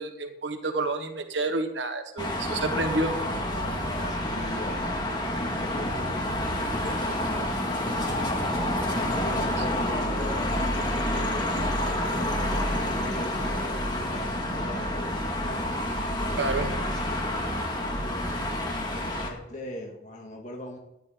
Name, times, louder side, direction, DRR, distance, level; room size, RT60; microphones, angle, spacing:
voice 1, 0.0-3.1 9.9-10.0 16.4-16.7, right 2 dB, 80° right, 6 dB, 1.3 m, -29 dB
sound 1, 2.2-19.3, left 1 dB, 25° left, 2.0 m, -28 dB
voice 2, 3.7-15.7 16.2-17.4 18.0-18.5 18.7-20.8, left 1 dB, 40° left, 0 dB, 1.9 m, -41 dB
sound 2, 5.8-17.0, equal, 5° right, 4.9 m, -46 dB
14.0 x 10.5 x 3.9 m, 0.90 s
head